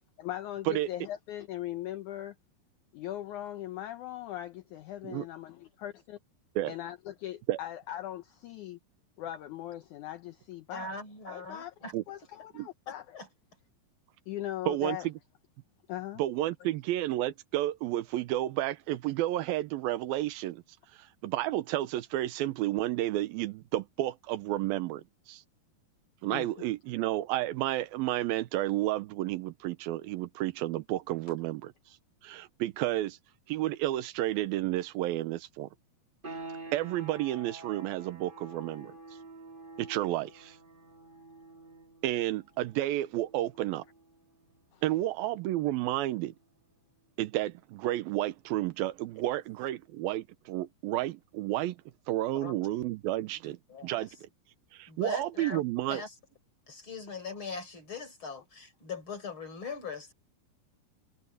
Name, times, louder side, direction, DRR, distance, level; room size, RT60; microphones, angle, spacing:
voice 1, 0.2-2.3 2.9-6.2 6.7-8.8 9.2-10.9 11.3-11.7 12.1-13.2 14.3-15.1 15.9-16.2 26.3-26.5 44.7-44.8, left 13 dB, 80° left, 1.7 m, -39 dB
voice 2, 10.7-11.9 13.1-13.3 52.3-52.5 53.7-54.1 54.9-55.6 55.9-56.1 56.7-60.1, left 4 dB, 30° left, 4.9 m, -40 dB
voice 3, 14.7-15.1 16.2-20.6 21.2-25.4 26.2-31.7 32.2-33.2 33.5-35.7 36.7-38.9 39.8-40.6 42.0-43.8 44.8-46.3 47.2-51.8 52.1-54.1 54.7-56.0, right 15 dB, 75° right, 2.6 m, -31 dB
sound 1, 36.2-46.7, right 3 dB, 25° right, 1.2 m, -49 dB
omnidirectional pair, 4.6 m